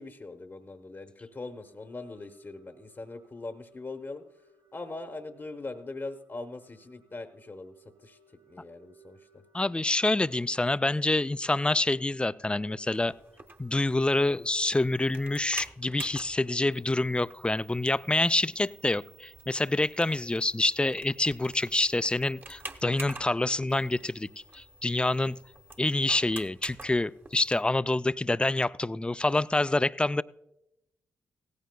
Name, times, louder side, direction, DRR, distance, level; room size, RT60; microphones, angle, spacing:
voice 1, 0.0-4.2 4.7-7.7 8.0-8.2 8.5-9.2, left 3 dB, 35° left, 6 dB, 0.9 m, -41 dB
sound 1, 1.3-15.5, right 5 dB, 55° right, 2.3 m, -61 dB
voice 2, 9.5-13.1 13.6-24.3 24.5-25.4 25.8-30.2, left 2 dB, 15° left, 16 dB, 0.4 m, -27 dB
sound 2, 12.9-27.6, right 2 dB, 30° right, 1.0 m, -48 dB
16.5 x 14.5 x 2.2 m, 0.85 s
supercardioid pair, 45°, 7 cm